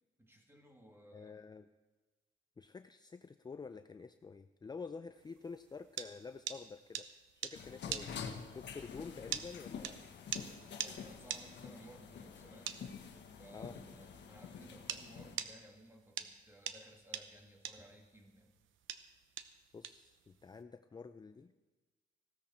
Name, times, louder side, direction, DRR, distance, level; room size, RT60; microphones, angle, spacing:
voice 1, 0.2-1.4 10.5-12.8 13.4-18.5, right 1 dB, 10° right, 2 dB, 2.4 m, -58 dB
voice 2, 1.1-1.7 2.6-7.1 7.3-8.1 8.5-10.1 13.5-13.8 19.7-21.7, left 5 dB, 20° left, 10 dB, 0.5 m, -49 dB
sound 1, 5.4-15.0 15.4-20.6, right 10 dB, 75° right, 0.9 m, -42 dB
sound 2, 7.5-15.4, left 6 dB, 65° left, 1.5 m, -48 dB
16.0 x 13.0 x 4.4 m, 1.2 s
cardioid pair, 90°, 20 cm